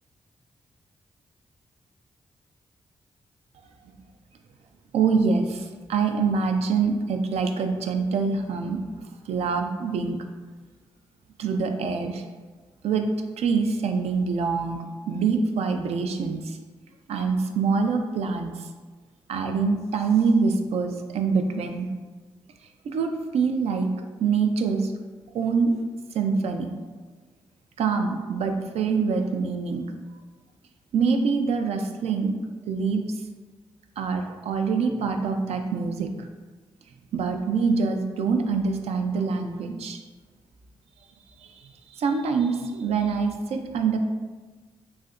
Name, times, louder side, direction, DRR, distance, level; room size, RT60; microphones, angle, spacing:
voice 1, 4.9-10.2 11.4-12.2 12.8-13.1 13.4-16.6 17.1-18.7 19.3-21.9 22.8-23.9 24.2-24.9 25.3-25.8 26.1-26.7 27.8-29.8 30.9-32.4 32.7-33.0 34.0-36.3 37.1-40.0 41.4-44.0, right 5 dB, 70° right, 5 dB, 0.4 m, -25 dB
3.2 x 2.7 x 2.4 m, 1.3 s
supercardioid pair, 45°, 11 cm